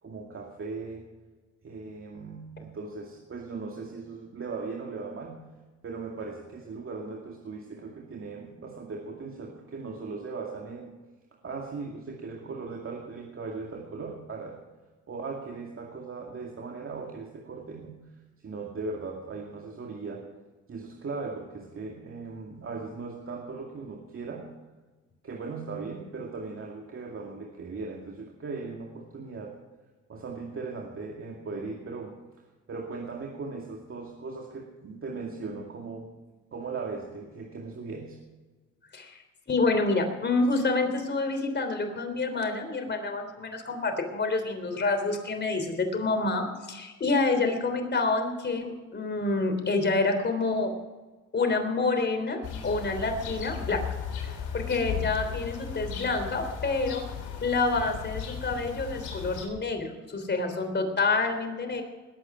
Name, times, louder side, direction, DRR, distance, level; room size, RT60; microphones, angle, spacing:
voice 1, 0.0-1.1 1.6-5.5 5.8-11.0 11.4-14.6 15.1-18.1 18.4-20.2 20.7-24.5 25.2-29.6 30.1-32.2 32.7-36.1 36.5-38.2, right 4 dB, 45° right, 0 dB, 2.4 m, -38 dB
voice 2, 39.5-50.7 51.3-53.8 54.2-57.0 57.4-61.8, left 3 dB, 35° left, 5 dB, 3.4 m, -28 dB
sound 1, 52.4-59.5, left 8 dB, 75° left, 3.8 m, -36 dB
20.5 x 8.8 x 6.0 m, 1.3 s
cardioid pair, 90°, 30 cm